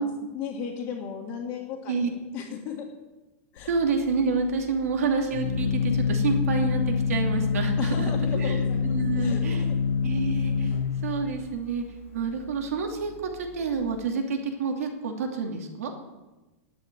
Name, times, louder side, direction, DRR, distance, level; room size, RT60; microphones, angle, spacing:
voice 1, 0.0-2.9 3.5-3.7 7.8-9.8, left 7 dB, 25° left, -6 dB, 1.8 m, -36 dB
Organ, 3.6-14.0, left 5 dB, 70° left, 1.0 m, -27 dB
voice 2, 3.7-9.7 10.0-10.8 11.0-11.8 12.1-15.9, right 4 dB, 85° right, 3 dB, 2.8 m, -28 dB
11.5 x 8.1 x 9.2 m, 1.1 s
supercardioid pair, 175°, 8 cm